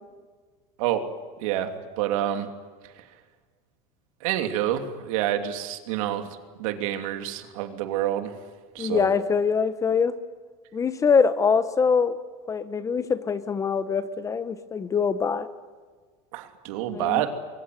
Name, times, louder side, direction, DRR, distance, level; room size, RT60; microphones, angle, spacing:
voice 1, 1.4-2.5 4.2-8.3 8.7-9.1 16.3-17.3, right 12 dB, 75° right, 6 dB, 3.0 m, -28 dB
voice 2, 8.8-10.1 10.7-12.1 12.5-15.5 16.9-17.2, left 5 dB, 20° left, 13 dB, 1.0 m, -23 dB
24.5 x 22.5 x 9.6 m, 1.5 s
supercardioid pair, 150°, 18 cm